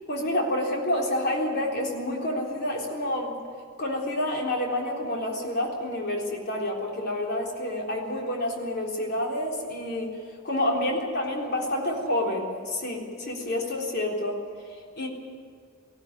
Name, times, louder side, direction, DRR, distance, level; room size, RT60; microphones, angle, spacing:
voice 1, 0.1-3.4 3.8-10.1 10.4-14.4 14.7-15.1, left 1 dB, 50° left, -1 dB, 3.7 m, -28 dB
19.5 x 16.0 x 9.7 m, 2.2 s
head